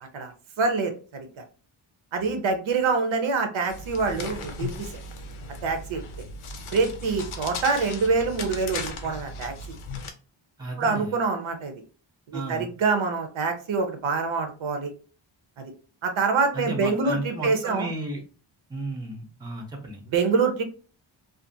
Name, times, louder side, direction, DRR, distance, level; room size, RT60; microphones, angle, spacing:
voice 1, 0.6-1.4 2.1-4.9 5.6-6.0 6.7-9.5 10.8-11.7 12.3-14.9 16.0-17.9 20.1-20.6, right 4 dB, 70° right, 6 dB, 0.7 m, -25 dB
sound 1, 3.7-10.1, left 3 dB, 80° left, 0.6 m, -37 dB
voice 2, 10.6-11.1 12.3-12.7 16.5-18.2 18.7-20.0, right 2 dB, 10° right, 2 dB, 0.6 m, -33 dB
2.5 x 2.4 x 2.6 m, 0.38 s
wide cardioid pair, 155°, 48 cm